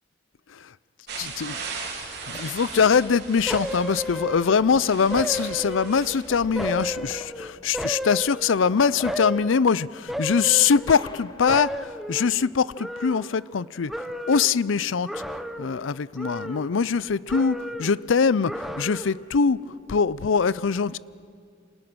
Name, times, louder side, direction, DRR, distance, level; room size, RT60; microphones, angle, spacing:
sound 1, 1.1-7.1, right 4 dB, 60° right, 3.9 m, -38 dB
voice 1, 1.2-1.5 2.3-13.9 14.3-15.2 15.6-21.0, left 6 dB, 85° left, 19 dB, 0.5 m, -23 dB
sound 2, 1.5-3.7 4.7-4.8 5.0-8.1 8.5-11.6, left 2 dB, 20° left, 1.1 m, -45 dB
sound 3, 3.5-4.7 5.1-6.2 6.6-8.7 9.0-9.6 10.1-11.2 11.5-13.6 13.9-14.6 15.0-15.9 16.2-17.0 17.3-18.0 18.4-19.3 19.6-19.7, equal, ahead, 0.8 m, -33 dB
28.0 x 26.5 x 6.2 m, 2.3 s
head